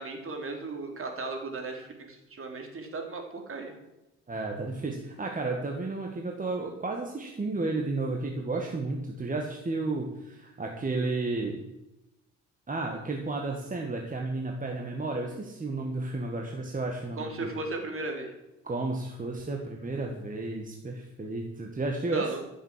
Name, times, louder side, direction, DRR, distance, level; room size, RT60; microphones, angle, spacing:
voice 1, 0.0-3.7 17.2-18.3 22.1-22.4, right 3 dB, 45° right, 3 dB, 3.7 m, -36 dB
voice 2, 4.3-11.6 12.7-17.5 18.6-22.2, right 3 dB, 25° right, 1 dB, 2.0 m, -32 dB
14.5 x 7.5 x 7.6 m, 0.94 s
cardioid pair, 90°, 30 cm